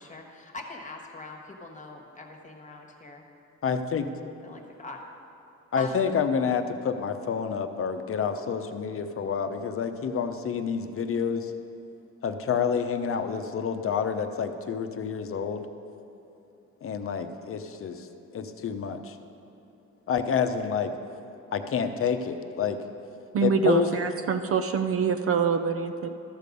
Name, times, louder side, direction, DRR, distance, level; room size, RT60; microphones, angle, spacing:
voice 1, 0.0-3.2 4.4-5.0 5.7-6.0, left 3 dB, 25° left, 2 dB, 1.4 m, -42 dB
voice 2, 3.6-4.1 5.7-11.5 12.2-15.7 16.8-18.1 18.3-19.2 20.1-20.9 21.5-22.8 23.4-23.9, left 6 dB, 45° left, 8 dB, 0.8 m, -28 dB
voice 3, 23.3-26.1, right 6 dB, 50° right, 8 dB, 0.6 m, -25 dB
13.0 x 6.7 x 5.3 m, 2.8 s
cardioid pair, 90°, 30 cm